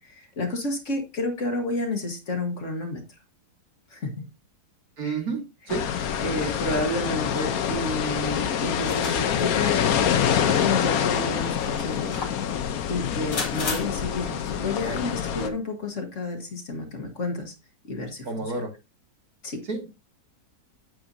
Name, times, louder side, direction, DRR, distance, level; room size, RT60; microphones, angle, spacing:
voice 1, 0.0-3.2 3.9-4.3 5.0-5.2 6.2-9.8 10.3-12.3 12.9-17.5 17.9-18.3 19.4-19.6, left 2 dB, 45° left, 5 dB, 1.6 m, -30 dB
voice 2, 5.0-5.4 5.7-5.8 18.2-18.7 19.7-19.9, right 4 dB, 60° right, 3 dB, 2.2 m, -29 dB
sound 1, 5.7-15.5, left 8 dB, 65° left, 1.2 m, -26 dB
sound 2, 8.8-9.5 10.2-10.3 11.2-12.5 13.3-13.8, left 4 dB, 85° left, 2.7 m, -33 dB
9.0 x 7.9 x 2.6 m, 0.25 s
omnidirectional pair, 1.8 m